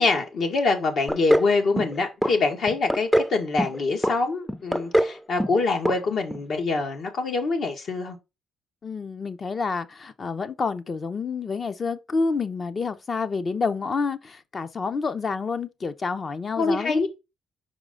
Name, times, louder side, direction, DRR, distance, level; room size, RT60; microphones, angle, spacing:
voice 1, 0.0-8.2 16.6-17.1, left 3 dB, 65° left, 1.8 m, -25 dB
sound 1, 1.1-1.5 1.8-2.3 2.7-3.3 3.6-4.2 4.5-5.1 5.4-5.6 5.9-6.0 6.3-6.4, equal, 5° left, 0.5 m, -22 dB
voice 2, 8.8-17.1, left 4 dB, 40° left, 0.8 m, -28 dB
5.5 x 4.8 x 3.9 m
cardioid pair, 90°, 0 cm